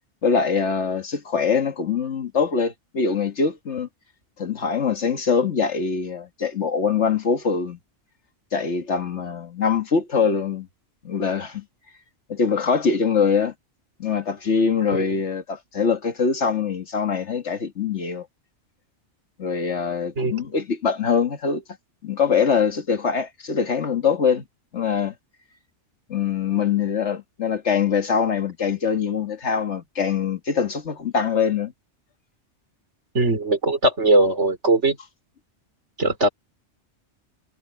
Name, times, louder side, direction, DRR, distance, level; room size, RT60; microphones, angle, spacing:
voice 1, 0.2-3.9 4.4-7.8 8.5-10.7 11.0-11.6 12.3-13.5 14.0-18.3 19.4-21.6 22.0-24.4 24.7-25.1 26.1-31.7, left 6 dB, 70° left, 1.9 m, -23 dB
voice 2, 33.1-35.0 36.0-36.3, right 2 dB, 70° right, 4.1 m, -20 dB
omnidirectional pair, 1.2 m